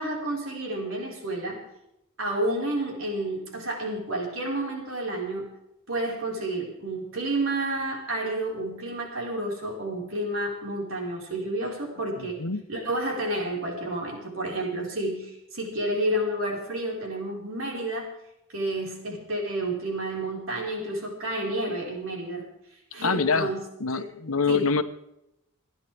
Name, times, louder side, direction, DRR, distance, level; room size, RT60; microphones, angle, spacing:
voice 1, 0.0-1.6 2.2-5.5 5.9-12.4 12.7-18.1 18.5-22.4 22.9-23.6 23.9-24.0 24.5-24.7, right 1 dB, 65° right, -1 dB, 4.8 m, -30 dB
voice 2, 12.2-12.6 23.0-23.5 23.8-24.8, left 5 dB, 75° left, 10 dB, 1.1 m, -25 dB
29.5 x 10.5 x 3.5 m, 0.85 s
head